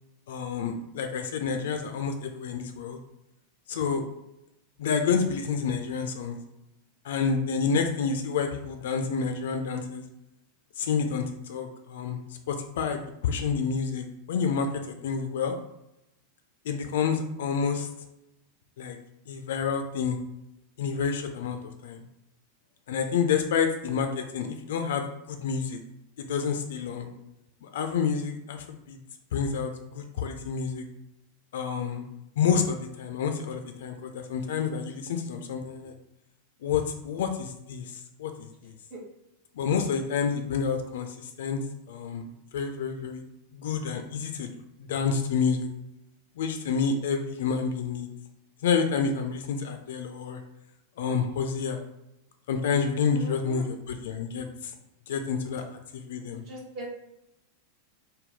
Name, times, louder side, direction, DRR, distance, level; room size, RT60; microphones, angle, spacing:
voice 1, 0.3-3.0 3.7-4.0 4.8-6.4 7.0-10.0 10.8-12.2 12.5-14.7 15.0-15.6 16.6-17.9 18.8-19.0 19.3-20.2 20.8-22.0 22.9-25.8 26.2-27.1 27.6-29.0 29.3-30.9 31.5-32.1 32.4-36.0 36.6-38.7 39.6-43.2 43.5-44.5 44.8-45.7 46.4-48.1 48.6-50.4 51.0-51.8 52.5-54.7 55.1-56.4, left 6 dB, 55° left, 5 dB, 0.3 m, -29 dB
voice 2, 53.1-53.7 56.5-56.9, right 1 dB, 45° right, -4 dB, 0.9 m, -39 dB
3.4 x 2.1 x 4.0 m, 0.88 s
figure-of-eight pair, 90°, 0 cm